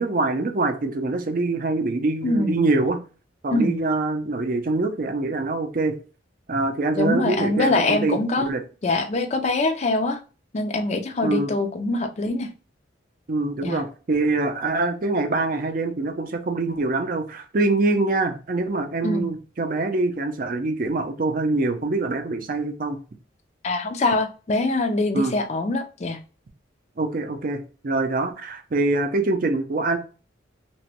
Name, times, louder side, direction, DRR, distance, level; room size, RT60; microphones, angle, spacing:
voice 1, 0.0-3.0 3.4-5.9 6.5-8.6 11.2-11.5 13.3-23.0 25.1-25.3 27.0-30.0, right 2 dB, 45° right, 6 dB, 0.5 m, -24 dB
voice 2, 2.2-2.6 3.5-3.8 6.9-8.5 8.8-10.2 10.5-12.5 13.6-13.8 19.0-19.3 23.6-26.2, left 2 dB, 35° left, 7 dB, 0.4 m, -23 dB
2.9 x 2.2 x 2.9 m, 0.35 s
head